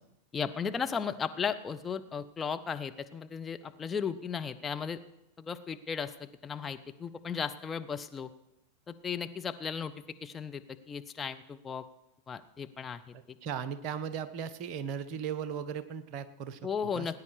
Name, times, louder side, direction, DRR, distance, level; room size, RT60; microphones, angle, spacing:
voice 1, 0.3-5.0 5.4-8.3 8.9-9.9 10.2-11.8 12.3-13.1 16.6-17.1, left 6 dB, 15° left, 8 dB, 0.7 m, -35 dB
voice 2, 13.4-16.7 16.9-17.1, right 7 dB, 40° right, 11 dB, 1.0 m, -37 dB
19.0 x 9.6 x 4.8 m, 0.92 s
figure-of-eight pair, 90°, 0 cm